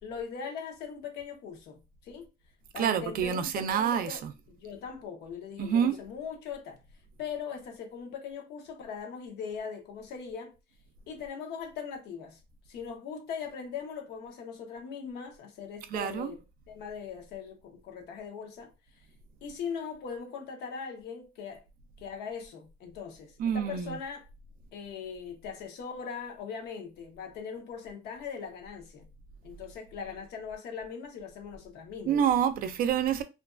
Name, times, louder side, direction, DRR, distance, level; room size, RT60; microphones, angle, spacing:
voice 1, 0.0-2.3 2.7-6.8 7.2-10.5 11.1-12.4 12.7-19.0 19.4-21.7 22.0-24.3 24.7-29.1 29.4-32.2, left 6 dB, 75° left, 0.8 m, -40 dB
voice 2, 2.8-4.3 5.6-6.0 15.9-16.3 23.4-24.0 32.1-33.2, right 8 dB, 60° right, 0.4 m, -27 dB
2.4 x 2.2 x 2.4 m
cardioid pair, 110°, 17 cm